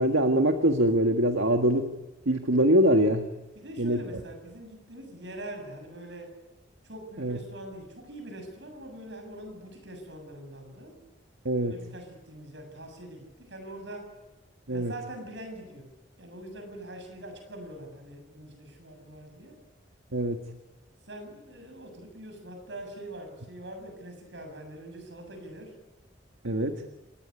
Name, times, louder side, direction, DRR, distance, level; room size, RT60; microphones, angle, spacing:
voice 1, 0.0-1.9 2.2-3.3 3.8-4.0 7.2-7.4 11.4-11.7 14.7-14.9 20.1-20.4 26.4-26.8, right 1 dB, 80° right, 5 dB, 1.7 m, -23 dB
voice 2, 3.6-6.4 6.8-11.0 11.7-14.1 14.7-15.9 16.2-19.6 21.1-25.8, right 1 dB, 65° right, 6 dB, 7.4 m, -43 dB
28.0 x 19.5 x 9.8 m, 1.1 s
head